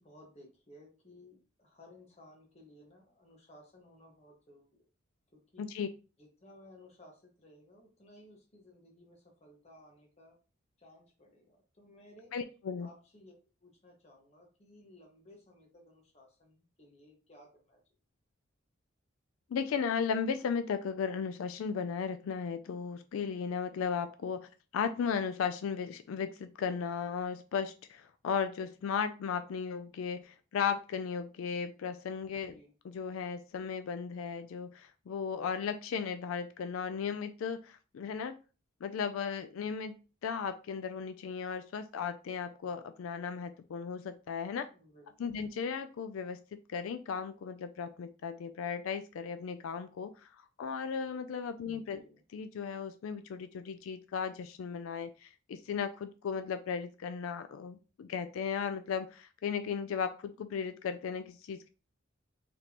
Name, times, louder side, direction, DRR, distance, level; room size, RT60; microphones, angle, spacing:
voice 1, 0.0-4.8 5.3-5.7 6.2-10.4 10.8-12.4 12.8-17.8 32.2-32.7 44.7-45.4 51.6-52.2, left 1 dB, 30° left, 1 dB, 1.2 m, -58 dB
voice 2, 5.6-5.9 12.3-12.9 19.5-32.5 32.8-38.4 38.8-44.7 45.2-46.4 46.7-50.3 50.6-52.0 52.3-61.7, left 6 dB, 85° left, 10 dB, 0.3 m, -36 dB
4.1 x 3.2 x 2.9 m, 0.34 s
head